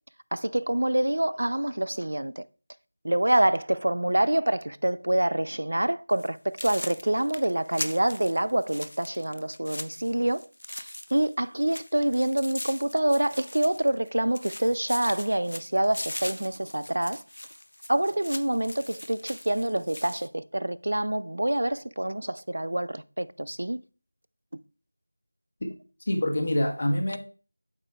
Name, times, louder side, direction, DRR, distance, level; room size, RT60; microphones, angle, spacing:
voice 1, 0.3-2.4 3.0-17.2 17.9-23.8, right 1 dB, 75° right, 0.4 m, -26 dB
sound 1, 6.1-6.3 6.6-11.3 11.6-14.1 14.3-20.3, left 1 dB, 75° left, 0.6 m, -40 dB
voice 2, 26.1-27.2, left 1 dB, 45° left, 1.2 m, -26 dB
8.3 x 5.0 x 2.3 m
figure-of-eight pair, 175°, 0 cm